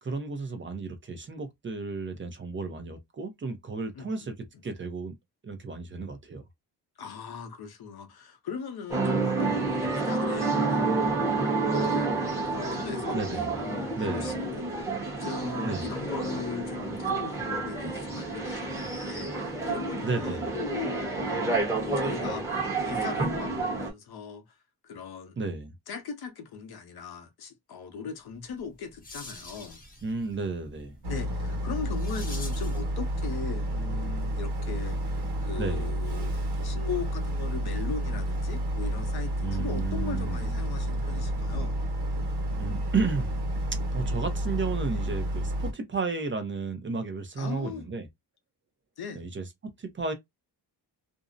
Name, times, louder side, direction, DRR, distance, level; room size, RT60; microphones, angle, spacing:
voice 1, 0.0-4.3 4.6-5.1 5.4-6.4 13.1-13.5 14.0-14.3 15.6-15.9 20.0-20.5 25.4-25.7 30.0-30.9 35.6-35.9 39.4-40.5 42.6-43.3 43.9-48.1 49.1-50.1, right 4 dB, 30° right, 0.5 m, -33 dB
voice 2, 3.9-4.3 7.0-13.2 13.6-14.7 15.2-24.6 24.8-25.4 25.9-29.8 31.1-41.7 47.4-47.9 49.0-49.3, left 6 dB, 65° left, 0.7 m, -39 dB
sound 1, 8.9-23.9, right 3 dB, 5° right, 0.9 m, -29 dB
sound 2, 28.5-32.9, left 2 dB, 20° left, 0.7 m, -46 dB
Boat Water vehicle, 31.0-45.7, right 1 dB, 70° right, 1.1 m, -30 dB
2.5 x 2.0 x 2.4 m
wide cardioid pair, 135°, 41 cm